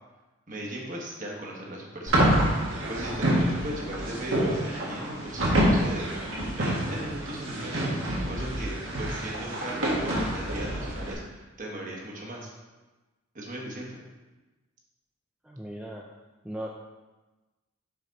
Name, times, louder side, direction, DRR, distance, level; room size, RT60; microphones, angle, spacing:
voice 1, 0.5-2.4 2.9-6.1 6.6-7.9 8.3-12.5 13.3-14.0, right 1 dB, 40° right, -2 dB, 1.3 m, -37 dB
sound 1, 2.1-11.1, right 1 dB, 70° right, 1.7 m, -27 dB
voice 2, 15.4-16.0 16.4-16.7, right 1 dB, 5° right, -2 dB, 0.4 m, -37 dB
6.0 x 5.8 x 4.0 m, 1.2 s
head